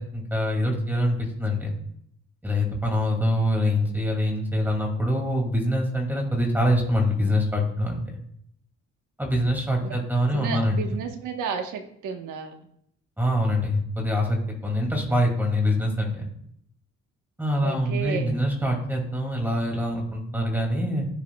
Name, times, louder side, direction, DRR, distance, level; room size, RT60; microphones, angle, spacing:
voice 1, 0.0-1.7 2.4-8.0 9.2-10.8 13.2-16.3 17.4-21.1, equal, 5° right, 0 dB, 2.5 m, -24 dB
voice 2, 10.3-12.5 17.6-18.3, right 6 dB, 85° right, 5 dB, 1.3 m, -32 dB
15.0 x 7.4 x 2.3 m, 0.70 s
cardioid pair, 90°, 30 cm